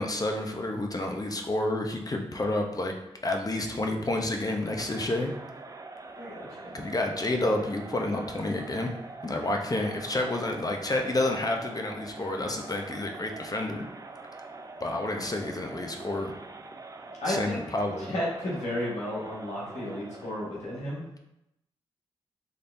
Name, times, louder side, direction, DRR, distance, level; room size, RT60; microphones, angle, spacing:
voice 1, 0.0-2.9 3.2-5.3 6.7-8.9 9.2-13.8 14.8-16.3 17.3-18.1, left 2 dB, 35° left, 3 dB, 0.7 m, -29 dB
Crowd, 4.4-20.5, right 3 dB, 30° right, 0.5 m, -44 dB
voice 2, 17.2-17.6 18.1-21.0, left 1 dB, 85° left, -6 dB, 1.5 m, -32 dB
4.2 x 3.3 x 2.6 m, 0.86 s
supercardioid pair, 40°, 11 cm